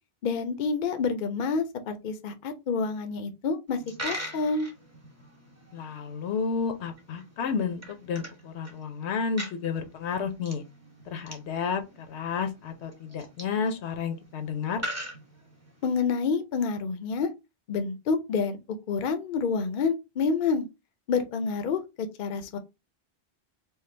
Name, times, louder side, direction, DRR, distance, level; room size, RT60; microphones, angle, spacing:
voice 1, 0.2-4.7 15.8-17.3 17.7-18.6 18.9-20.7 21.1-22.6, left 5 dB, 60° left, 0.7 m, -28 dB
Coin (dropping), 3.7-16.0, equal, 15° right, 0.9 m, -43 dB
voice 2, 5.7-10.6 11.1-14.8, left 5 dB, 85° left, 1.0 m, -31 dB
4.6 x 2.1 x 3.2 m
omnidirectional pair, 1.1 m